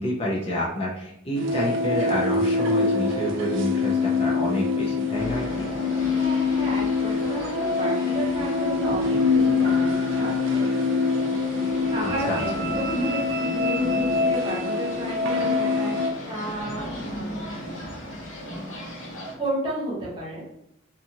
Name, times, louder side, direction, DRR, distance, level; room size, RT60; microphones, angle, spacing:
voice 1, 0.0-5.7 12.0-12.4, left 1 dB, 30° left, -4 dB, 0.4 m, -28 dB
sound 1, 1.3-16.1, left 4 dB, 65° right, 0.4 m, -24 dB
sound 2, 5.2-19.3, equal, 70° left, 1.0 m, -37 dB
voice 2, 6.1-11.5 11.9-15.9 16.3-17.9 19.4-20.4, right 1 dB, 25° right, -7 dB, 1.0 m, -32 dB
2.6 x 2.4 x 2.8 m, 0.81 s
head